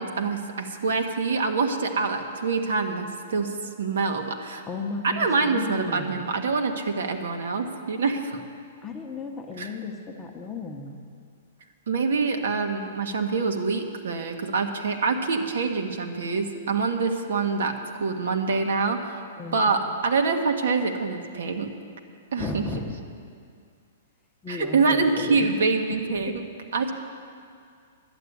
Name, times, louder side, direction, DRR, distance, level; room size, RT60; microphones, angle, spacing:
voice 1, 0.0-4.6 5.0-8.4 9.6-9.7 11.9-19.2 19.5-21.7 22.3-22.7 24.5-26.4 26.7-26.9, right 4 dB, 75° right, 5 dB, 1.3 m, -25 dB
voice 2, 4.7-6.3 8.8-11.0 19.4-19.7 22.4-22.9 24.4-25.5 26.1-26.2, left 3 dB, 10° left, 2 dB, 0.8 m, -34 dB
11.5 x 8.0 x 9.4 m, 2.3 s
hypercardioid pair, 170°, 0 cm